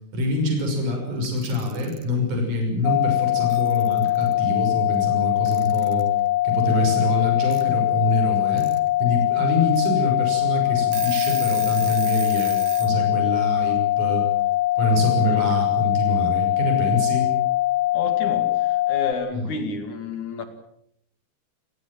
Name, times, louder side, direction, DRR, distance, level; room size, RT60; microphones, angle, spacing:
voice 1, 0.1-6.1 6.4-8.7 9.0-14.3 14.8-17.3 19.3-19.4, left 1 dB, 45° right, 2 dB, 7.6 m, -25 dB
Alarm / Clock, 1.2-2.0 3.2-3.3 3.5-4.3 5.5-6.1 7.5-7.6 8.4-8.8 9.2-9.3 9.7-9.9 10.4-10.5 10.8-12.9, right 11 dB, 65° right, 3.5 m, -37 dB
sound 1, 2.8-19.1, left 16 dB, 65° left, 2.4 m, -22 dB
voice 2, 17.9-20.5, left 4 dB, 50° left, 8 dB, 3.4 m, -31 dB
29.5 x 18.5 x 7.7 m, 0.70 s
omnidirectional pair, 4.8 m